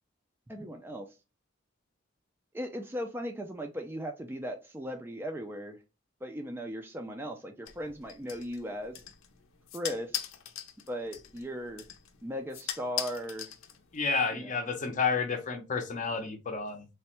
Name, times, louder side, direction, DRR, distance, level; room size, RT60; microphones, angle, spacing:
voice 1, 0.5-1.1 2.5-5.8 6.2-8.9 9.7-10.3 10.9-11.9 12.2-13.5 14.3-14.6, equal, 10° right, 4 dB, 0.3 m, -37 dB
sound 1, 7.7-14.1, left 11 dB, 85° left, 0.6 m, -41 dB
voice 2, 13.9-16.9, left 4 dB, 40° left, 6 dB, 0.6 m, -30 dB
3.2 x 2.1 x 4.2 m, 0.29 s
head